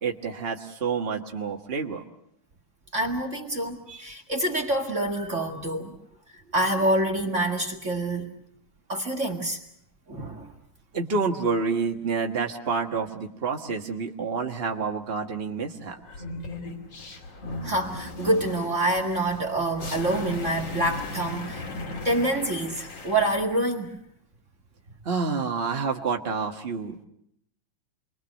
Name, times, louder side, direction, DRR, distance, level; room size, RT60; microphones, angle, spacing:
voice 1, 0.0-2.0 10.9-16.0 25.0-27.0, right 5 dB, 70° right, 2 dB, 0.5 m, -28 dB
voice 2, 2.9-5.9 6.3-8.4 8.9-9.6 10.1-10.5 17.6-21.6 22.0-24.0, right 1 dB, 30° right, 5 dB, 1.6 m, -26 dB
sound 1, 16.0-23.4, left 2 dB, 50° left, 3.7 m, -37 dB
28.0 x 23.0 x 6.4 m, 0.74 s
omnidirectional pair, 3.6 m